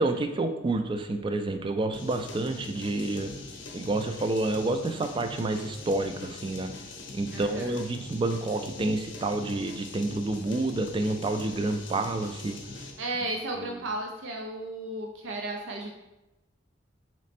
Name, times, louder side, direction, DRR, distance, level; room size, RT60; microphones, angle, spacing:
voice 1, 0.0-3.3 3.7-6.7 7.1-12.6 13.7-13.8, right 2 dB, 25° right, 7 dB, 0.3 m, -29 dB
sound 1, 1.9-13.1, left 2 dB, 75° left, 0.7 m, -42 dB
voice 2, 7.3-7.7 13.0-16.0, right 2 dB, 85° right, 1 dB, 0.6 m, -34 dB
4.1 x 3.1 x 4.2 m, 0.96 s
head